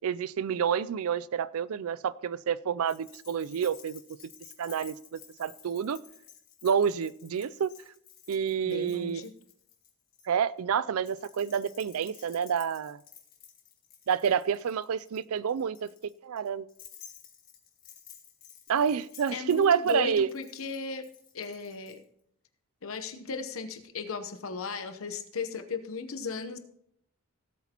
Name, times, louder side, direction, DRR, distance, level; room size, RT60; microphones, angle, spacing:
voice 1, 0.0-4.0 4.6-6.0 6.6-7.7 8.3-9.2 10.3-13.0 14.1-16.7 18.7-20.3, right 7 dB, 80° right, 19 dB, 0.4 m, -28 dB
Keys jangling, 2.8-10.3 11.0-22.0, left 9 dB, 45° left, 1.7 m, -54 dB
voice 2, 8.6-9.3 19.3-21.1 21.3-22.0 22.8-26.6, left 4 dB, 70° left, 8 dB, 0.9 m, -36 dB
17.0 x 8.2 x 2.9 m, 0.71 s
head